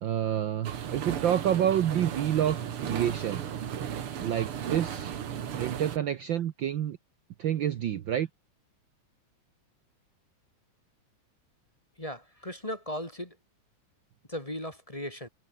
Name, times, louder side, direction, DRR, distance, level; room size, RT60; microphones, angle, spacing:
voice 1, 0.0-3.4 4.2-5.1 5.6-7.0 7.4-8.3, right 10 dB, 80° right, 1.0 m, -28 dB
sound 1, 0.6-6.0, right 9 dB, 50° right, 2.2 m, -35 dB
voice 2, 12.0-13.4 14.3-15.3, equal, 10° left, 2.2 m, -37 dB
omnidirectional pair, 3.4 m